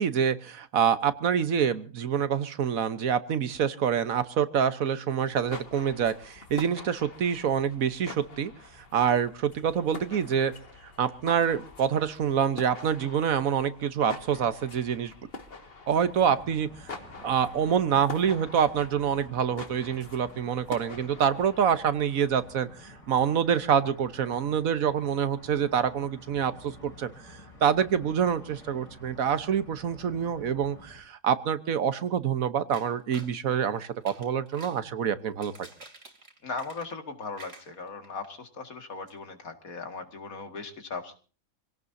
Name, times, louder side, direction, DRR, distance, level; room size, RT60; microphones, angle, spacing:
voice 1, 0.0-8.5 8.9-10.5 11.0-15.1 15.9-16.7 17.2-22.7 23.1-27.1 27.6-35.5, right 8 dB, 75° right, 13 dB, 1.5 m, -26 dB
sound 1, 5.2-22.6, left 3 dB, 45° left, 1.9 m, -45 dB
sound 2, 15.9-31.0, left 1 dB, 25° left, 3.4 m, -51 dB
sound 3, 32.7-33.4 33.9-34.8 35.2-37.1 37.3-38.3 38.6-38.7 39.1-39.2, right 3 dB, 60° right, 3.2 m, -49 dB
voice 2, 36.4-41.1, left 4 dB, 75° left, 6 dB, 2.5 m, -38 dB
27.0 x 17.5 x 2.7 m, 0.37 s
omnidirectional pair, 1.5 m